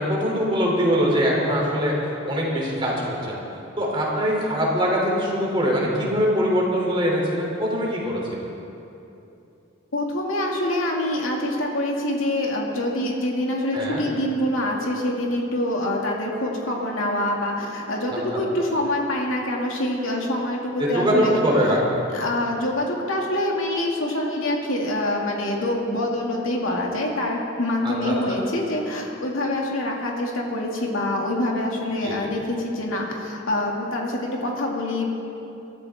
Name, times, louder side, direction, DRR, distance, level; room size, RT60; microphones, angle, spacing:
voice 1, 0.0-3.4 3.8-8.4 13.7-14.0 18.1-18.2 20.8-22.0 27.8-28.1 32.0-32.2, equal, 25° right, -3 dB, 3.2 m, -23 dB
voice 2, 9.9-21.4 21.7-21.8 22.1-35.1, left 1 dB, 85° left, -1 dB, 2.4 m, -25 dB
23.5 x 13.5 x 3.7 m, 2.8 s
head